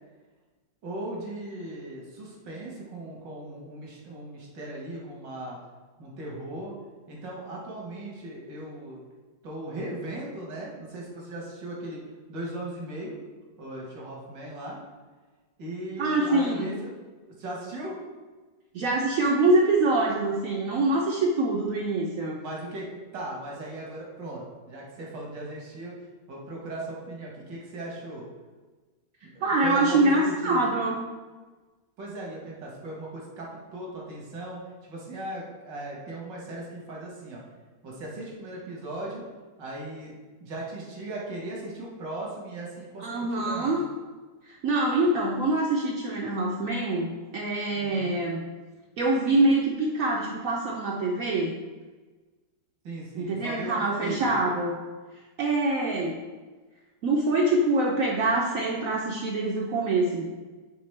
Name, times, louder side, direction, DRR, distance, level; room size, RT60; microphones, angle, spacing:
voice 1, 0.8-5.6 6.0-6.7 7.1-9.0 9.4-12.0 12.3-13.2 13.6-14.8 15.6-16.9 17.4-18.0 22.4-25.9 26.3-28.3 29.2-30.8 32.0-37.4 37.8-39.3 39.6-40.1 40.4-43.7 47.8-48.2 52.8-54.5, right 1 dB, 90° right, -3 dB, 2.0 m, -37 dB
voice 2, 16.0-16.7 18.7-22.4 29.4-31.0 43.0-43.8 44.4-48.4 49.0-51.6 53.2-54.8 55.4-56.2 57.0-60.2, right 2 dB, 65° right, -1 dB, 0.8 m, -25 dB
7.8 x 3.7 x 3.3 m, 1.3 s
omnidirectional pair, 1.9 m